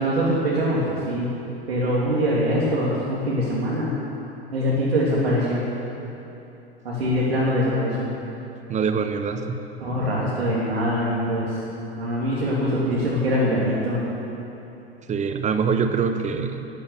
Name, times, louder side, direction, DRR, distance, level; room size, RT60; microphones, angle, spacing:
voice 1, 0.0-1.3 1.7-3.9 4.5-5.6 6.8-8.1 9.8-11.6 12.0-14.0, equal, 75° right, -6 dB, 2.8 m, -23 dB
voice 2, 8.7-9.6 15.1-16.7, right 6 dB, 25° right, 8 dB, 1.1 m, -24 dB
12.5 x 10.5 x 8.2 m, 3.0 s
figure-of-eight pair, 85°, 31 cm